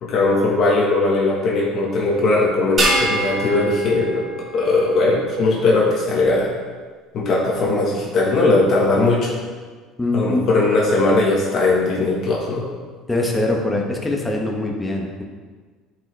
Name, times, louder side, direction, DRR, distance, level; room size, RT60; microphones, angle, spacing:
voice 1, 0.0-4.2 4.5-6.5 7.1-9.4 10.1-12.6, left 2 dB, 45° left, -3 dB, 1.5 m, -19 dB
sound 1, 2.8-5.3, right 2 dB, 30° right, 1.8 m, -24 dB
voice 2, 10.0-10.5 13.1-15.2, left 2 dB, 10° left, 0 dB, 1.2 m, -22 dB
12.0 x 5.1 x 3.4 m, 1.5 s
cardioid pair, 130°, 0 cm